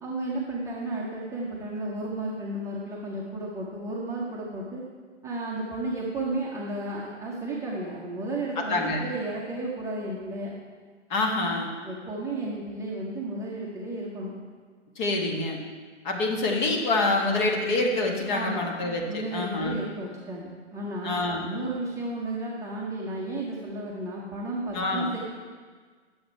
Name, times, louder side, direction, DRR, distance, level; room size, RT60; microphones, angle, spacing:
voice 1, 0.0-4.8 5.2-10.5 11.8-14.3 18.3-18.6 19.1-25.2, right 2 dB, 10° right, -5 dB, 0.8 m, -33 dB
voice 2, 8.6-9.1 11.1-11.7 15.0-15.6 16.0-19.8 21.0-21.5 24.7-25.1, left 2 dB, 40° left, 1 dB, 1.6 m, -26 dB
10.5 x 7.1 x 4.6 m, 1.5 s
figure-of-eight pair, 120°, 36 cm